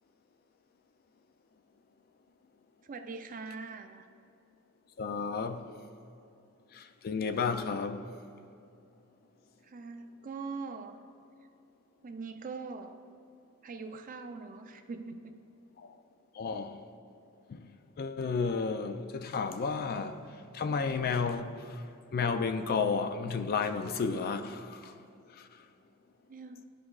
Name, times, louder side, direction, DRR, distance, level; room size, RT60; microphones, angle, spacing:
voice 1, 2.8-4.0 9.6-11.0 12.0-13.0 13.6-15.4 26.3-26.6, right 4 dB, 40° right, 0.4 m, -42 dB
voice 2, 5.0-5.6 6.7-8.1 15.8-15.9 16.4-16.8 17.5-17.7 18.0-20.2 20.5-21.8 22.1-24.9 25.4-25.5, left 5 dB, 45° left, 0.3 m, -32 dB
12.5 x 4.8 x 2.4 m
head